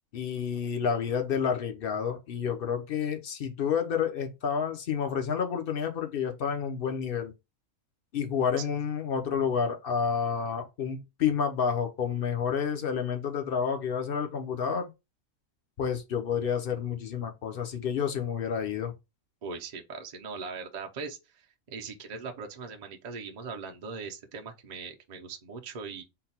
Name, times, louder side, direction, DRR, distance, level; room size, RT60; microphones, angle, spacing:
voice 1, 0.1-7.3 8.1-14.9 15.8-18.9, left 7 dB, 50° left, 0.8 m, -29 dB
voice 2, 19.4-26.0, right 5 dB, 45° right, 0.5 m, -40 dB
3.9 x 2.2 x 4.1 m
omnidirectional pair, 1.4 m